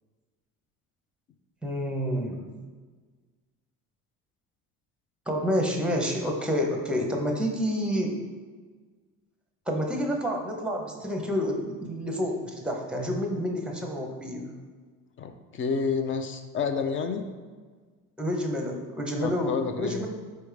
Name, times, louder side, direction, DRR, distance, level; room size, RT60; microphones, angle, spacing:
voice 1, 1.6-2.5 5.3-8.2 9.7-14.5 18.2-20.1, equal, 5° right, 2 dB, 0.7 m, -29 dB
voice 2, 15.2-17.2 19.2-20.1, left 5 dB, 35° left, 7 dB, 0.5 m, -29 dB
4.3 x 3.4 x 3.3 m, 1.5 s
supercardioid pair, 80°, 35 cm